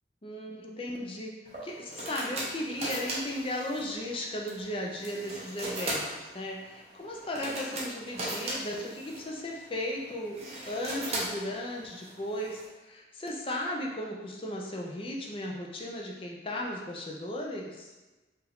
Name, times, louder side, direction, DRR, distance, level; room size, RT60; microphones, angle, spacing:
voice 1, 0.2-1.3 1.6-10.4 10.7-17.9, left 1 dB, 30° left, -1 dB, 0.5 m, -36 dB
sound 1, 1.5-12.7, right 1 dB, 35° right, 0.8 m, -39 dB
4.6 x 2.6 x 3.5 m, 1.2 s
head